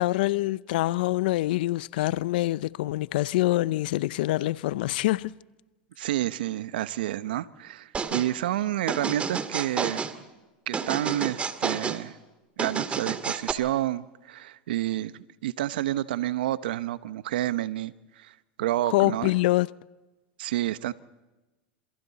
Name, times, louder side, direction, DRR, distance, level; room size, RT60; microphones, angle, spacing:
voice 1, 0.0-5.3 18.9-19.7, left 17 dB, 70° left, 0.6 m, -25 dB
voice 2, 6.0-10.1 10.7-12.1 12.6-19.3 20.4-20.9, right 14 dB, 75° right, 0.9 m, -29 dB
sound 1, 7.9-8.3 8.9-10.1 10.7-12.0 12.6-13.5, right 5 dB, 25° right, 1.9 m, -30 dB
28.0 x 27.5 x 4.1 m
hypercardioid pair, 105°, 5 cm